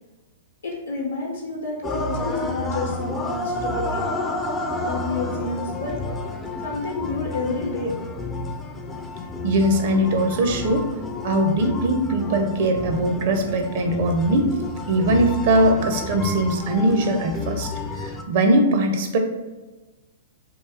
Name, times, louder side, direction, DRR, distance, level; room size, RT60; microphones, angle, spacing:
voice 1, 0.6-4.1 4.8-6.0 6.6-8.0, left 3 dB, 75° left, -4 dB, 0.8 m, -29 dB
sound 1, 1.8-18.2, left 2 dB, 15° left, 0.4 m, -30 dB
voice 2, 9.4-10.9 11.2-14.5 14.9-17.7 18.0-19.2, right 1 dB, 50° right, 4 dB, 0.5 m, -21 dB
3.0 x 2.8 x 3.4 m, 1.2 s
figure-of-eight pair, 105°, 0 cm